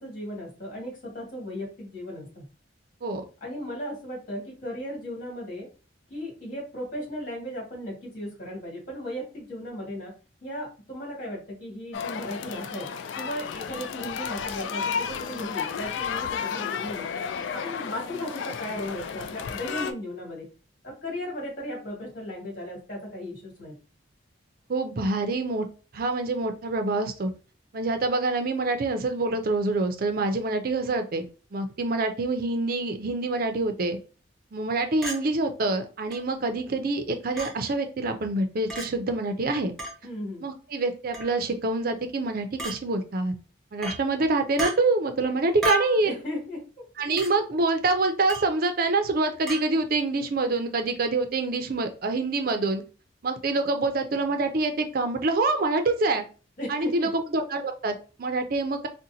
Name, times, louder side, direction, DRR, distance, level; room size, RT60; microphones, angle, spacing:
voice 1, 0.0-2.5 3.4-5.7 6.1-10.1 10.4-12.9 13.2-17.1 17.5-20.5 20.8-23.8 40.0-40.4 45.2-45.3 46.0-46.8 56.6-57.1, left 1 dB, 45° left, -3 dB, 1.8 m, -36 dB
sound 1, 11.9-19.9, left 7 dB, 75° left, 0.3 m, -32 dB
voice 2, 24.7-25.7 25.9-27.3 27.7-31.2 31.5-34.0 34.5-39.7 40.4-43.3 43.7-46.1 47.0-52.8 53.2-56.2 56.7-58.9, right 3 dB, 50° right, 6 dB, 0.5 m, -26 dB
Chink clink, 35.0-35.2 36.1-36.2 37.4-37.5 38.7-38.9 39.8-40.0 41.1-41.4 42.6-42.8 43.8-44.0 44.6-44.7 45.6-46.0 47.2-47.3 48.3-48.5 49.5-49.6, right 1 dB, ahead, 0.9 m, -31 dB
3.9 x 2.1 x 2.7 m, 0.35 s
head